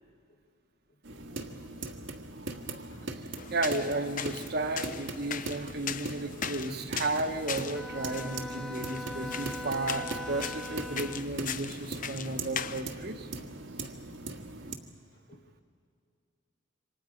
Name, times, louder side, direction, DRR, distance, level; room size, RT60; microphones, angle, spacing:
voice 1, 0.9-1.7 2.7-3.2 6.2-6.3 6.8-6.9 7.4-7.5 11.8-12.1 15.1-15.5, left 1 dB, 80° left, -2 dB, 4.9 m, -60 dB
sound 1, 1.0-14.8, right 2 dB, 80° right, 1.6 m, -40 dB
sound 2, 3.4-12.8, left 7 dB, 45° left, 0.8 m, -40 dB
voice 2, 3.5-13.3, right 2 dB, 55° right, 6 dB, 1.2 m, -33 dB
Bowed string instrument, 7.7-11.4, left 1 dB, 5° left, 0.5 m, -41 dB
28.0 x 25.0 x 5.2 m, 2.3 s
head